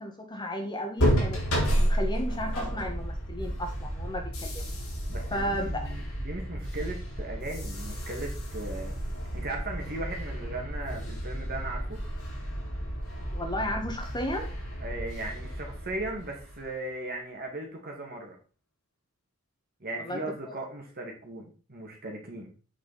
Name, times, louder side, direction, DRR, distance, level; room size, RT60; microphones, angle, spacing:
voice 1, 0.0-4.6 5.3-5.9 13.3-14.5 20.0-20.2, equal, 20° left, 4 dB, 1.8 m, -34 dB
sound 1, 1.0-16.7, equal, 80° left, 4.0 m, -32 dB
voice 2, 5.1-9.0 9.3-12.0 14.8-18.4 19.8-22.5, right 2 dB, 45° right, 0 dB, 2.0 m, -37 dB
8.5 x 6.3 x 4.2 m, 0.35 s
head